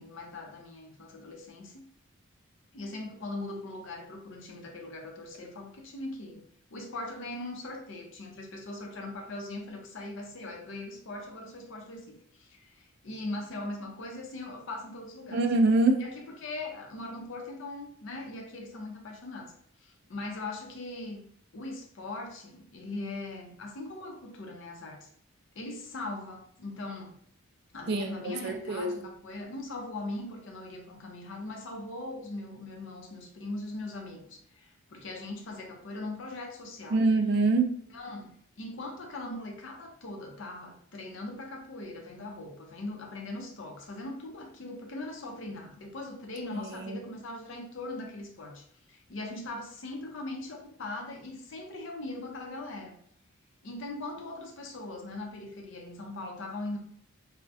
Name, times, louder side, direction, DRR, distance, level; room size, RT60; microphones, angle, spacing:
voice 1, 0.0-1.8 2.7-6.4 6.7-15.4 16.0-19.5 19.8-21.2 21.5-25.1 25.6-27.1 27.7-37.0 37.9-53.0 53.6-56.8, left 2 dB, 60° left, 2 dB, 0.5 m, -40 dB
voice 2, 15.3-16.0 27.9-29.0 36.9-37.7 46.7-47.0, right 3 dB, 50° right, 5 dB, 0.3 m, -25 dB
2.3 x 2.0 x 2.6 m, 0.65 s
head